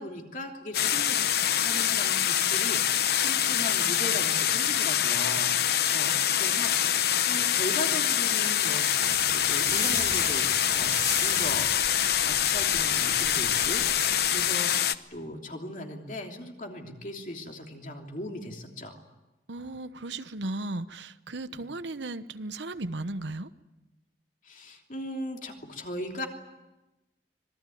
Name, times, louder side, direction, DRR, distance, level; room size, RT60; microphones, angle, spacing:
voice 1, 0.0-11.7 12.2-19.0 21.5-21.6 24.4-26.3, left 1 dB, 45° left, 2 dB, 3.1 m, -38 dB
sound 1, 0.7-15.0, left 10 dB, 60° left, 0.8 m, -25 dB
sound 2, 9.0-14.6, left 3 dB, 20° left, 2.7 m, -36 dB
voice 2, 19.5-23.5, right 2 dB, 80° right, 12 dB, 1.0 m, -36 dB
25.5 x 18.5 x 9.3 m, 1.0 s
head